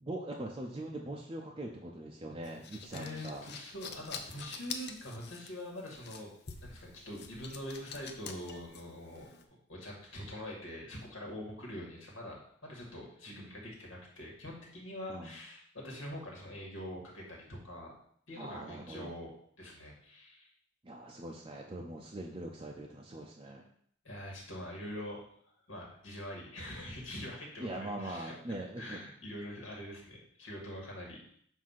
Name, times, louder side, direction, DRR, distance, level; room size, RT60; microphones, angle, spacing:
voice 1, 0.0-3.4 13.3-13.5 15.1-15.3 18.4-19.1 20.8-23.6 27.6-29.0, right 1 dB, 25° right, -1 dB, 0.6 m, -42 dB
sound 1, 2.4-9.4, left 6 dB, 55° left, 0.7 m, -46 dB
voice 2, 2.9-6.3 6.6-9.3 9.7-17.9 18.3-19.3 19.6-20.5 24.0-25.2 25.7-28.3 28.8-31.2, left 1 dB, 80° left, -2 dB, 2.1 m, -44 dB
7.4 x 2.7 x 5.7 m, 0.64 s
head